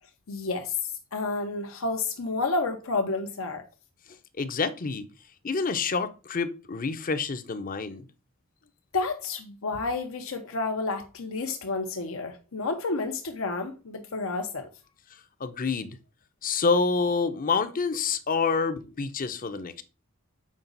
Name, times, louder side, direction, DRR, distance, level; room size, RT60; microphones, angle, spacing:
voice 1, 0.3-3.6 8.9-14.7, left 3 dB, 80° left, 0.9 m, -30 dB
voice 2, 4.4-5.0 5.4-8.1 15.4-16.0 16.4-19.8, left 4 dB, 45° left, 0.7 m, -27 dB
7.4 x 4.9 x 4.0 m
head